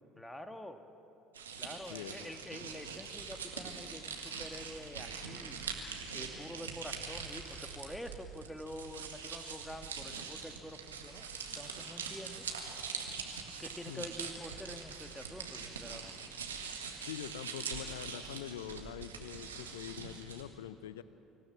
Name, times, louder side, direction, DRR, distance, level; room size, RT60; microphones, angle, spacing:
voice 1, 0.2-0.8 1.6-11.3 11.5-12.4 13.6-16.2, equal, 5° left, 7 dB, 1.7 m, -47 dB
sound 1, 1.3-20.4, right 5 dB, 85° right, 1.8 m, -43 dB
voice 2, 1.8-2.3 13.9-14.1 17.0-21.0, left 10 dB, 75° left, 14 dB, 0.6 m, -44 dB
25.5 x 16.5 x 7.6 m, 2.9 s
figure-of-eight pair, 60°, 0 cm